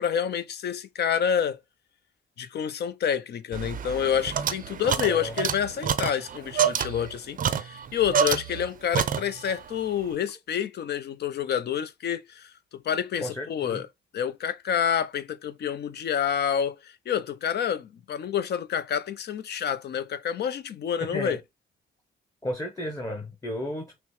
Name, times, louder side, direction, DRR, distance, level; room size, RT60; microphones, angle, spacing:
voice 1, 0.0-1.6 2.4-12.5 12.8-13.9 14.1-21.4, left 8 dB, 55° left, 0.6 m, -28 dB
sound 1, 3.5-8.7 8.9-9.6, right 8 dB, 45° right, 0.5 m, -28 dB
voice 2, 13.2-13.8 21.0-21.4 22.4-24.0, equal, 15° left, 1.0 m, -33 dB
5.9 x 2.1 x 3.1 m
cardioid pair, 90°, 20 cm